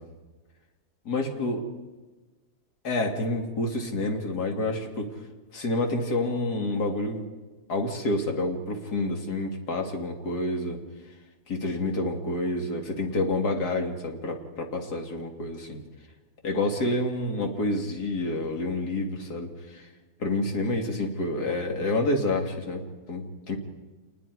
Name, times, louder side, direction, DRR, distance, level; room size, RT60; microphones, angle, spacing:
voice 1, 1.0-1.7 2.8-5.1 5.5-7.3 7.7-10.8 11.5-15.8 16.4-19.9 20.2-23.6, left 2 dB, 70° left, 2 dB, 2.8 m, -28 dB
27.5 x 21.0 x 4.7 m, 1.2 s
omnidirectional pair, 1.8 m